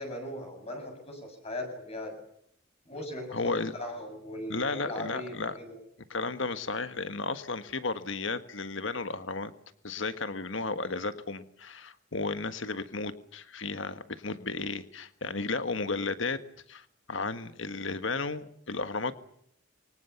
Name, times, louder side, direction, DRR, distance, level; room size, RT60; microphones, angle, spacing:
voice 1, 0.0-2.1 2.9-5.8, left 1 dB, 30° left, 5 dB, 7.2 m, -39 dB
voice 2, 3.3-3.7 4.5-5.6 6.1-9.5 9.8-16.4 16.7-19.1, left 3 dB, 65° left, 11 dB, 1.6 m, -33 dB
28.5 x 25.0 x 7.0 m, 0.70 s
head